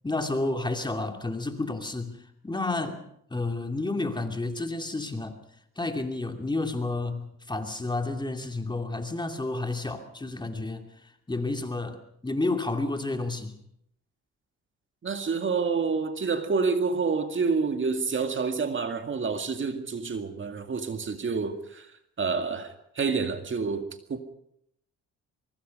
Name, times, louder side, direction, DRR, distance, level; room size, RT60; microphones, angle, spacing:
voice 1, 0.0-2.2 2.4-3.0 3.3-5.4 5.8-13.6, left 2 dB, 15° left, 2.6 m, -31 dB
voice 2, 15.0-21.9 22.2-24.2, right 5 dB, 40° right, 2.1 m, -28 dB
23.5 x 23.5 x 5.4 m
cardioid pair, 90°, 30 cm